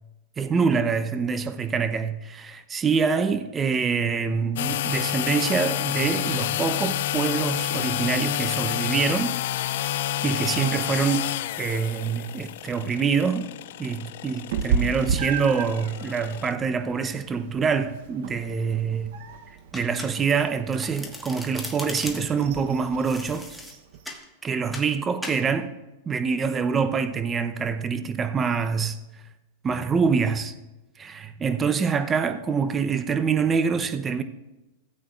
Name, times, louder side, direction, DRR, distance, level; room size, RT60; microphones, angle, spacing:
voice 1, 0.4-9.4 10.2-11.3 11.6-13.5 13.8-19.1 19.7-23.5 24.4-25.7 26.1-29.0 29.6-30.5 31.0-34.2, right 5 dB, 20° right, 0.7 m, -25 dB
sound 1, 4.6-16.5, left 13 dB, 70° left, 0.4 m, -29 dB
Meow, 14.5-24.2, right 6 dB, 65° right, 0.8 m, -34 dB
Domestic sounds home sounds, 19.7-20.4 20.7-22.4 23.0-24.2 24.7-24.9 25.2-25.4, left 1 dB, ahead, 1.4 m, -37 dB
17.0 x 8.5 x 2.4 m
hypercardioid pair, 125°, 0 cm